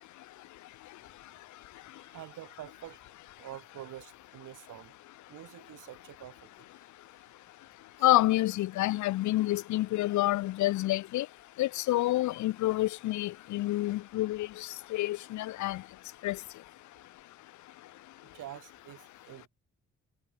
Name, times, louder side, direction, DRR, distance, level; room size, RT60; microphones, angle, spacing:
voice 1, 1.0-3.1 3.4-5.0 5.3-6.9 8.0-8.1 18.3-19.5, right 14 dB, 85° right, 7.4 m, -48 dB
voice 2, 8.0-11.3 11.6-15.8 16.2-16.4, left 16 dB, 70° left, 0.6 m, -28 dB
cardioid pair, 90°, 30 cm